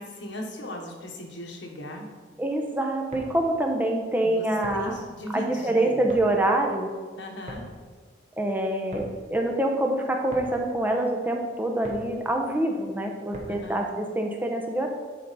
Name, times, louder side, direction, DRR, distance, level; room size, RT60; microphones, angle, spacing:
voice 1, 0.0-2.1 4.2-6.1 7.2-7.7 13.5-13.9, left 1 dB, 70° left, 1 dB, 1.3 m, -37 dB
voice 2, 2.4-4.9 5.3-6.9 8.4-14.9, right 1 dB, 10° right, 2 dB, 0.8 m, -26 dB
sound 1, 2.9-13.8, equal, 40° right, 1.2 m, -45 dB
10.5 x 4.5 x 4.1 m, 1.5 s
head